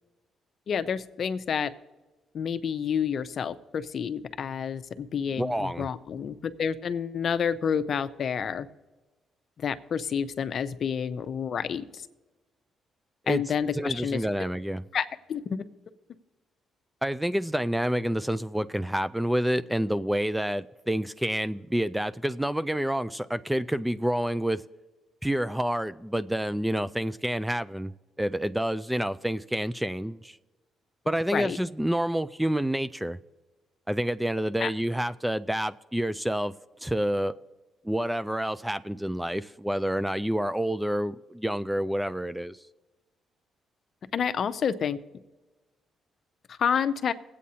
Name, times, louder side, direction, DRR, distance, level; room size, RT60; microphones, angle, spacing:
voice 1, 0.7-1.7 2.3-8.7 9.6-12.1 13.3-14.2 14.9-15.6 31.3-31.6 34.6-34.7 44.1-45.0 46.5-47.1, left 7 dB, 55° left, 0.6 m, -29 dB
voice 2, 5.4-5.9 13.3-13.4 13.7-14.8 17.0-24.6 25.2-27.9 28.2-30.4 31.1-33.2 33.9-36.5 36.8-37.3 37.8-42.6, right 1 dB, 5° right, 0.3 m, -28 dB
20.5 x 8.4 x 2.8 m
cardioid pair, 90°, 0 cm